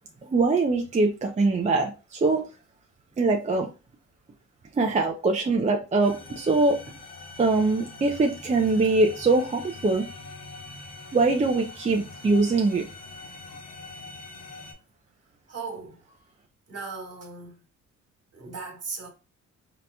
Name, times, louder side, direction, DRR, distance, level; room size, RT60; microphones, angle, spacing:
voice 1, 0.3-2.4 3.2-3.7 4.7-6.8 7.4-10.1 11.1-12.9, right 3 dB, 25° right, 0.5 m, -23 dB
sound 1, 6.0-14.7, left 3 dB, 55° left, 1.3 m, -43 dB
voice 2, 15.5-16.2 16.7-17.6 18.3-19.1, right 4 dB, 55° right, 1.6 m, -38 dB
3.8 x 2.9 x 2.2 m
cardioid pair, 90°, 30 cm